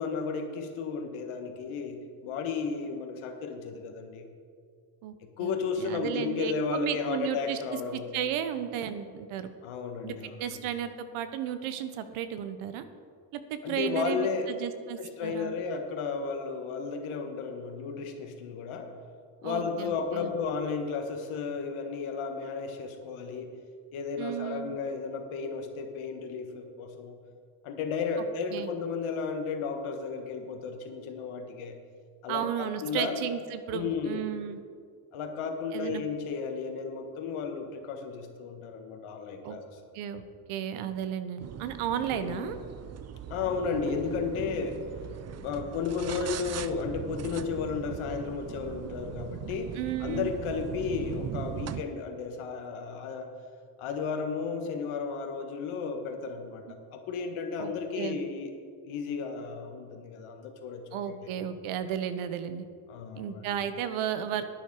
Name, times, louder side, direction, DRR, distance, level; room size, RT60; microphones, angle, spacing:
voice 1, 0.0-4.3 5.2-8.1 9.6-10.6 13.6-14.5 15.0-18.9 19.4-23.5 23.9-27.1 27.6-31.8 32.2-33.1 33.7-34.2 35.1-39.6 42.1-42.5 43.3-44.8 45.3-53.3 53.8-56.6 56.9-58.5 58.8-61.2 62.9-63.6, left 5 dB, 75° left, 4 dB, 1.6 m, -33 dB
voice 2, 5.4-7.6 7.9-9.5 10.0-12.8 13.3-15.5 19.4-20.3 24.2-24.8 28.5-28.7 32.3-34.6 35.7-36.0 39.4-39.6 39.9-40.2 40.5-42.6 49.7-50.3 57.6-58.2 60.9-62.6 63.2-64.4, right 9 dB, 75° right, 10 dB, 1.0 m, -34 dB
sound 1, 41.4-51.8, right 9 dB, 35° right, 0.5 m, -39 dB
11.0 x 9.5 x 4.8 m, 2.1 s
supercardioid pair, 85°, 49 cm